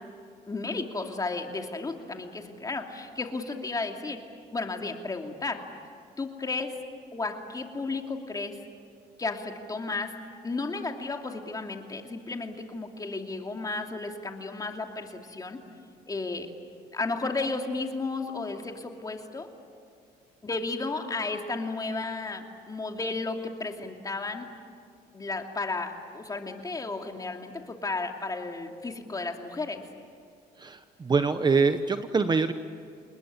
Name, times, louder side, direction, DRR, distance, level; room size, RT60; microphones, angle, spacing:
voice 1, 0.5-4.2 4.5-5.6 6.2-6.8 7.1-8.6 9.2-10.1 10.4-15.6 16.1-16.5 16.9-19.5 20.4-24.5 25.1-29.9, left 3 dB, 20° left, 3 dB, 2.7 m, -33 dB
voice 2, 30.6-32.5, right 4 dB, 25° right, 10 dB, 1.0 m, -24 dB
29.0 x 20.5 x 9.8 m, 2.3 s
cardioid pair, 110°, 17 cm